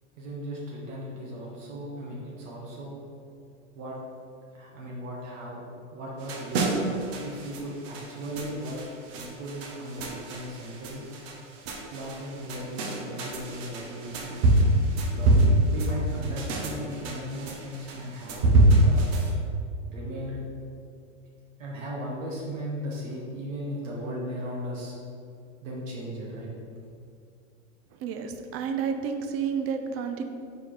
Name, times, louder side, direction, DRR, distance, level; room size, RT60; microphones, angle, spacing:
voice 1, 0.2-3.0 3.7-4.0 4.5-6.7 7.2-8.8 9.1-11.1 11.9-14.5 15.1-18.5 18.7-19.1 19.9-20.4 21.6-25.0 25.6-26.5, equal, 80° right, -5 dB, 1.4 m, -37 dB
sound 1, 6.2-19.3, right 1 dB, 55° right, 1.0 m, -25 dB
voice 2, 28.0-30.2, right 6 dB, 40° right, 6 dB, 0.6 m, -30 dB
4.8 x 4.1 x 4.8 m, 2.4 s
hypercardioid pair, 105°, 37 cm